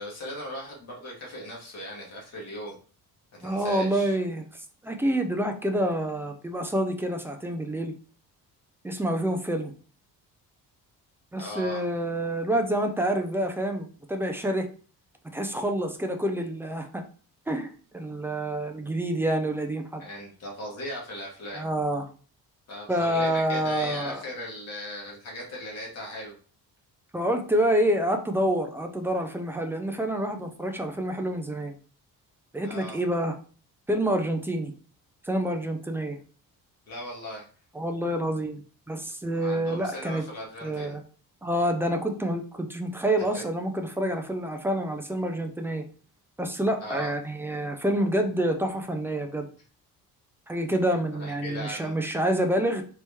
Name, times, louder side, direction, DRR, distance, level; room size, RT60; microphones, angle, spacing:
voice 1, 0.0-2.8 3.3-4.2 11.4-11.9 20.0-21.7 22.7-26.4 32.6-33.0 36.9-37.5 39.4-41.0 43.3-43.4 46.8-47.1 51.1-52.0, equal, 40° left, -3 dB, 1.8 m, -38 dB
voice 2, 3.4-4.4 4.8-7.9 8.8-9.7 11.3-14.7 15.3-17.0 17.5-20.0 21.5-22.0 22.9-24.2 27.1-31.7 32.5-33.3 33.9-34.7 35.2-36.2 37.8-38.6 38.9-40.2 40.6-41.0 41.4-45.8 46.4-49.5 50.5-52.8, right 1 dB, 5° right, 5 dB, 0.3 m, -27 dB
4.5 x 2.9 x 3.4 m, 0.39 s
cardioid pair, 170°, 38 cm